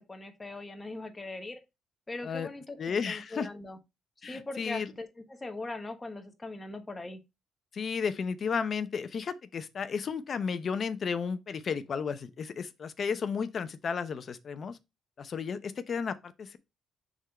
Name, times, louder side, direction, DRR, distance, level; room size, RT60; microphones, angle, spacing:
voice 1, 0.0-1.6 2.1-3.8 4.2-7.2, left 2 dB, 20° left, 1.3 m, -40 dB
voice 2, 2.8-3.5 4.2-4.9 7.7-14.8 15.2-16.6, left 6 dB, 50° left, 0.7 m, -33 dB
6.2 x 3.8 x 4.3 m
cardioid pair, 90°, 0 cm